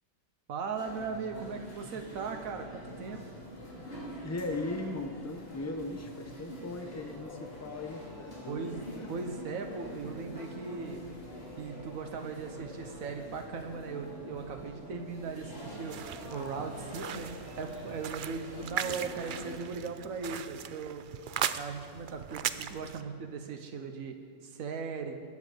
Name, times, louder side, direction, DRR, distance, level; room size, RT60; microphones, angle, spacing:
voice 1, 0.5-3.2 8.5-8.8 9.1-11.0 11.6-16.0 16.3-17.3 17.6-21.0 21.6-24.1 24.4-25.2, right 5 dB, 85° right, 4 dB, 1.4 m, -38 dB
sound 1, 0.8-19.6, equal, 45° left, 2.8 m, -45 dB
voice 2, 4.2-9.1, left 2 dB, 15° left, 4 dB, 1.0 m, -38 dB
sound 2, 15.0-20.7, equal, 35° right, 4.3 m, -56 dB
sound 3, 15.9-23.0, right 9 dB, 70° right, 0.5 m, -38 dB
21.0 x 8.6 x 5.0 m, 2.2 s
omnidirectional pair, 1.4 m